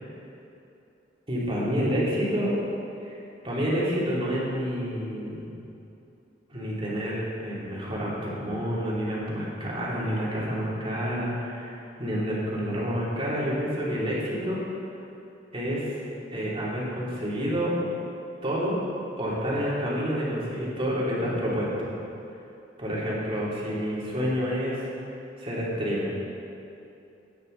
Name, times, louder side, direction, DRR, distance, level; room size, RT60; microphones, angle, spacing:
voice 1, 1.3-2.6 3.0-3.2 3.4-5.6 6.5-14.6 15.5-16.0 16.3-17.8 18.4-18.8 19.2-21.9 22.8-24.9 25.4-26.1, equal, 30° right, -6 dB, 3.1 m, -28 dB
17.5 x 9.4 x 4.0 m, 2.8 s
head